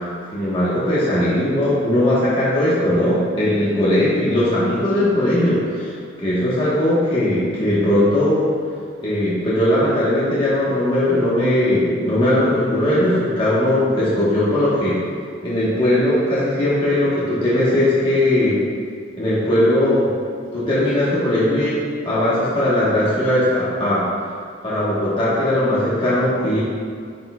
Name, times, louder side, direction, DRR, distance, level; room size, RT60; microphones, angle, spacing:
voice 1, 0.3-5.9 6.2-8.5 9.0-15.0 15.4-18.6 19.2-20.1 20.5-21.8 22.0-24.1 24.6-26.6, left 1 dB, 30° left, -10 dB, 1.2 m, -19 dB
10.5 x 4.4 x 2.3 m, 2.1 s
head